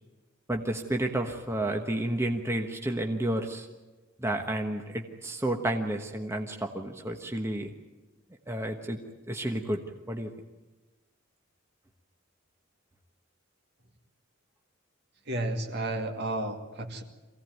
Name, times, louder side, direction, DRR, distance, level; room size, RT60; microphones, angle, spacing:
voice 1, 0.5-3.7 4.2-7.7 8.5-9.0 9.3-9.8 10.1-10.3, right 1 dB, 15° right, 3 dB, 1.2 m, -31 dB
voice 2, 15.3-17.0, right 2 dB, 55° right, 4 dB, 2.4 m, -32 dB
24.0 x 17.0 x 9.4 m, 1.2 s
head